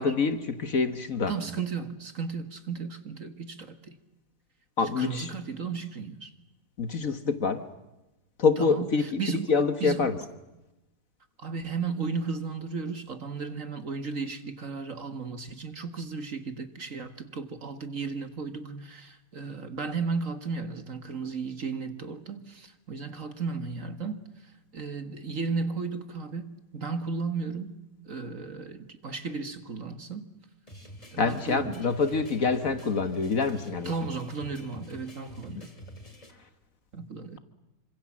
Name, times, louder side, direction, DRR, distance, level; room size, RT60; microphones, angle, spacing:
voice 1, 0.0-1.3 4.8-5.3 6.8-7.6 8.4-10.2 31.2-33.9, left 4 dB, 50° left, 1.7 m, -26 dB
voice 2, 1.3-4.0 5.0-6.3 8.6-9.5 9.8-10.1 11.4-27.8 28.1-30.3 31.1-31.9 33.9-35.7 36.9-37.4, right 5 dB, 45° right, 1.9 m, -34 dB
sound 1, 30.7-36.3, equal, 20° left, 3.6 m, -47 dB
27.5 x 25.5 x 7.4 m
omnidirectional pair, 2.0 m